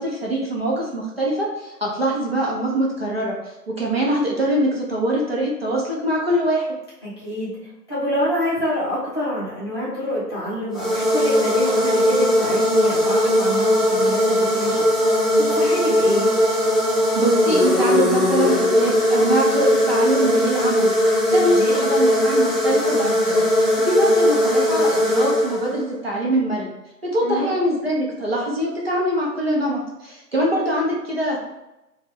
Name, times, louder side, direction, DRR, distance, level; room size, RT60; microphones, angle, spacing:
voice 1, 0.0-6.7 17.1-26.7 27.0-31.4, right 1 dB, 40° right, -3 dB, 0.7 m, -23 dB
voice 2, 7.0-16.3 21.5-21.8 27.2-27.6, equal, 15° left, -9 dB, 0.8 m, -27 dB
sound 1, 10.7-25.9, left 1 dB, ahead, 0.4 m, -19 dB
5.5 x 2.3 x 3.5 m, 0.95 s
figure-of-eight pair, 150°, 50 cm